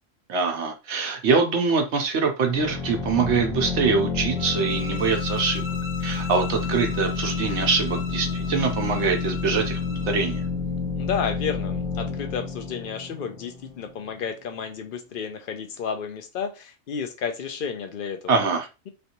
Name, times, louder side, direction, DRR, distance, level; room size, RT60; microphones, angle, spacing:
voice 1, 0.3-5.7 6.0-9.8 10.1-10.4 18.3-18.7, right 5 dB, 70° right, 1.0 m, -24 dB
sound 1, 2.4-13.9, left 5 dB, 25° left, 0.9 m, -29 dB
sound 2, 4.3-10.5, left 5 dB, 85° left, 1.3 m, -39 dB
sound 3, 6.5-15.9, right 1 dB, 20° right, 1.5 m, -46 dB
voice 2, 10.9-18.4, left 6 dB, 55° left, 0.6 m, -32 dB
3.2 x 2.6 x 2.8 m
omnidirectional pair, 1.3 m